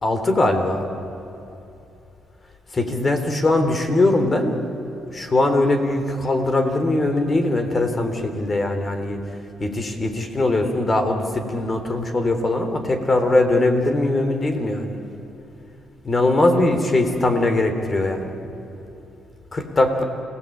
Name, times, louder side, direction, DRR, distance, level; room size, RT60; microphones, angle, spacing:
voice 1, 0.0-0.9 2.7-4.6 5.1-9.2 9.6-15.0 16.0-18.3 19.5-20.0, left 2 dB, 30° left, 7 dB, 3.6 m, -21 dB
29.0 x 18.0 x 8.7 m, 2.9 s
cardioid pair, 90°, 0 cm